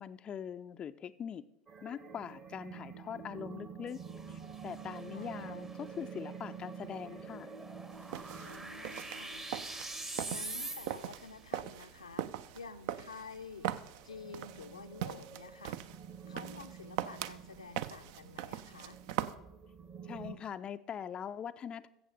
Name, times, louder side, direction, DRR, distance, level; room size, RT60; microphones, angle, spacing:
voice 1, 0.0-1.4 1.8-4.0 4.3-7.5 20.0-21.9, left 8 dB, 30° left, 11 dB, 0.4 m, -42 dB
sound 1, 1.7-12.3 12.9-13.0 13.3-13.5 13.9-20.4, right 6 dB, 35° right, 1.2 m, -49 dB
sound 2, 3.9-11.3, right 2 dB, 15° right, 0.8 m, -46 dB
voice 2, 5.1-5.6 8.4-9.5 10.3-13.7 14.0-15.8 16.3-19.0, left 4 dB, 80° left, 8 dB, 0.5 m, -50 dB
sound 3, 7.9-19.3, right 11 dB, 55° right, 0.4 m, -41 dB
14.0 x 7.6 x 4.9 m, 0.91 s
figure-of-eight pair, 75°, 3 cm